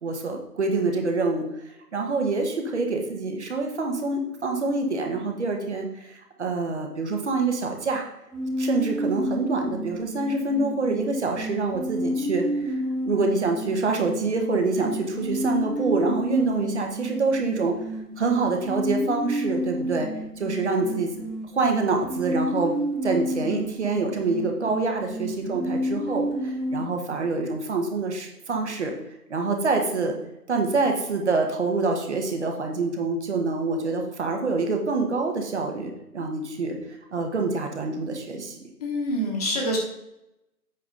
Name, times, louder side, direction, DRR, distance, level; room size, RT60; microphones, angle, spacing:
voice 1, 0.0-1.5 1.9-8.0 8.6-12.7 13.0-17.7 18.2-20.1 20.4-21.2 21.5-22.7 23.0-28.9 29.3-30.2 30.5-38.6, right 3 dB, 45° right, 3 dB, 1.4 m, -26 dB
sound 1, 8.3-26.8, equal, ahead, 0.4 m, -30 dB
voice 2, 38.8-39.8, equal, 25° left, -1 dB, 1.3 m, -26 dB
8.3 x 5.9 x 3.8 m, 0.84 s
figure-of-eight pair, 145°, 47 cm